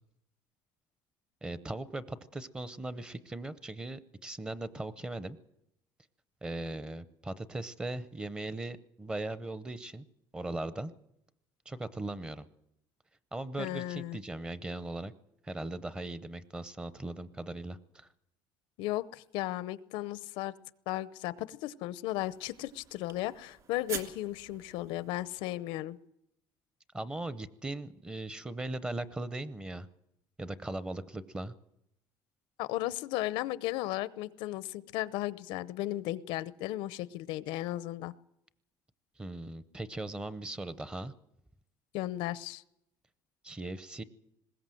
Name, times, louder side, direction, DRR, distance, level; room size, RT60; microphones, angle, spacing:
voice 1, 1.4-5.4 6.4-10.1 10.3-10.9 11.7-12.5 13.3-15.1 15.4-18.1 26.9-29.9 30.4-31.5 39.2-41.1 43.4-44.0, right 2 dB, 10° right, 15 dB, 0.6 m, -39 dB
voice 2, 13.6-14.2 18.8-20.5 20.9-26.0 32.6-38.1 41.9-42.6, left 15 dB, 90° left, 17 dB, 0.7 m, -35 dB
sound 1, 22.1-25.7, right 8 dB, 45° right, 2.3 m, -46 dB
20.5 x 17.0 x 7.7 m, 0.81 s
cardioid pair, 165°, 8 cm